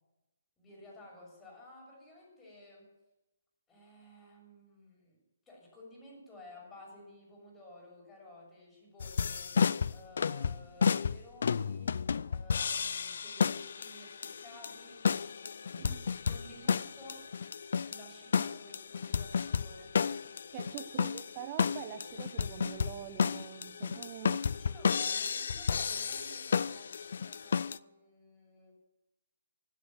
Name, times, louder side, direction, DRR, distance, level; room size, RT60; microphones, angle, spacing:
voice 1, 0.6-3.0 3.7-15.1 16.2-17.3 17.8-20.0 23.9-26.9 27.2-28.7, left 1 dB, 10° left, -2 dB, 6.8 m, -54 dB
sound 1, 9.0-27.8, left 6 dB, 60° left, 0.4 m, -32 dB
voice 2, 15.8-16.2 20.5-24.4, right 11 dB, 30° right, 10 dB, 0.8 m, -45 dB
14.0 x 12.5 x 7.9 m, 0.99 s
figure-of-eight pair, 135°, 0 cm